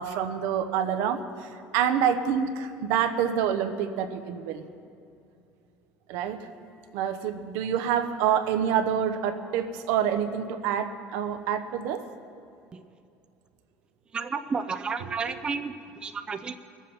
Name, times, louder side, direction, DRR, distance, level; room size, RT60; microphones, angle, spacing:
voice 1, 0.0-4.6 6.1-6.4 6.9-12.0, right 8 dB, 80° right, 8 dB, 0.9 m, -27 dB
voice 2, 14.1-16.6, right 5 dB, 20° right, 8 dB, 0.4 m, -32 dB
22.0 x 7.4 x 5.7 m, 2.6 s
cardioid pair, 155°, 5 cm